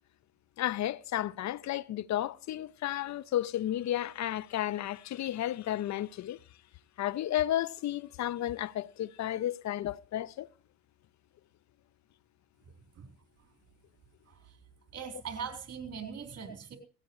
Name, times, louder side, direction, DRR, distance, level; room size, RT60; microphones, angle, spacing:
voice 1, 0.6-6.4 7.0-10.5, left 12 dB, 65° left, 0.7 m, -32 dB
voice 2, 14.9-16.8, right 6 dB, 55° right, 3.9 m, -41 dB
18.0 x 16.5 x 3.1 m
cardioid pair, 90°, 30 cm